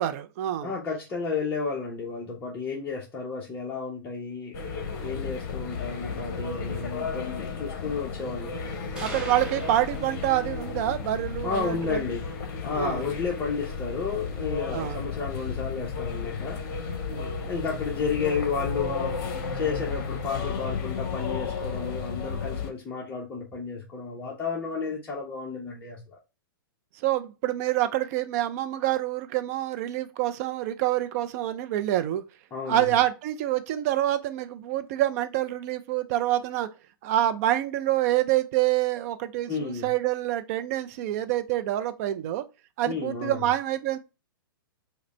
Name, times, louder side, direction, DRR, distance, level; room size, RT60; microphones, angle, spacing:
voice 1, 0.0-0.7 9.0-12.1 12.7-13.1 14.7-15.0 17.1-17.4 27.0-32.2 32.7-36.7 37.0-42.4 42.8-44.0, right 13 dB, 40° right, 0.5 m, -27 dB
voice 2, 0.6-4.6 5.0-8.6 11.4-12.3 12.6-16.6 17.4-19.2 19.5-26.2 32.5-33.0 39.5-39.9 42.8-43.4, left 5 dB, 15° left, 0.8 m, -32 dB
sound 1, 4.5-22.7, left 5 dB, 50° left, 0.8 m, -33 dB
sound 2, 9.0-10.9, right 1 dB, 5° right, 1.0 m, -39 dB
4.8 x 2.1 x 3.1 m
hypercardioid pair, 115°, 12 cm